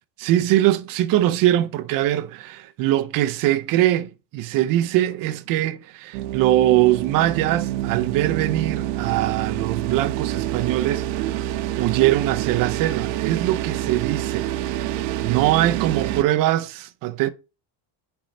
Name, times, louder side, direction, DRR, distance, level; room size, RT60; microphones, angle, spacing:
voice 1, 0.2-14.5 14.7-17.3, right 14 dB, 40° right, 0.7 m, -22 dB
sound 1, 6.1-16.2, right 13 dB, 90° right, 1.1 m, -27 dB
9.2 x 4.7 x 5.3 m
cardioid pair, 170°, 49 cm